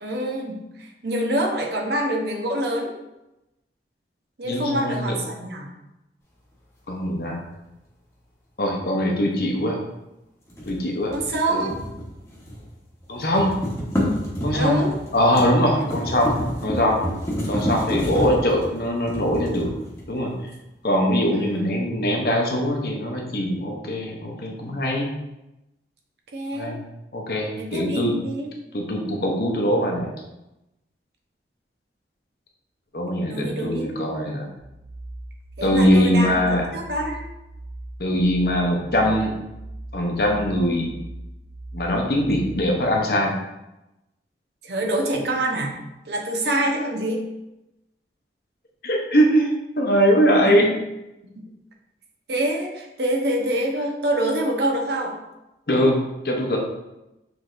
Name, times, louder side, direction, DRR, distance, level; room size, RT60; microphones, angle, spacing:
voice 1, 0.0-2.9 4.4-5.7 11.1-11.8 14.5-14.9 15.8-15.9 16.6-16.7 21.3-21.7 26.3-26.8 27.6-28.5 33.3-33.9 35.6-36.3 36.7-37.2 44.6-45.7 46.1-47.2 50.4-50.7 52.3-55.2, right 1 dB, 65° right, 0 dB, 0.8 m, -26 dB
voice 2, 4.4-5.1 6.9-7.4 8.6-9.8 10.7-11.1 11.5-11.6 13.1-13.6 14.4-14.8 15.1-17.0 17.5-19.7 20.1-20.3 20.8-25.1 26.5-26.8 27.1-28.1 28.7-30.1 32.9-34.5 35.6-36.7 38.0-39.3 39.9-40.9 41.7-43.4 48.8-50.7 55.7-56.0 56.2-56.6, equal, 55° left, 0 dB, 0.7 m, -22 dB
sound 1, 10.5-12.7 13.0-20.3, equal, 15° left, 1.0 m, -29 dB
sound 2, 34.6-42.9, right 1 dB, 85° left, 1.0 m, -39 dB
6.2 x 3.4 x 2.5 m, 0.94 s
head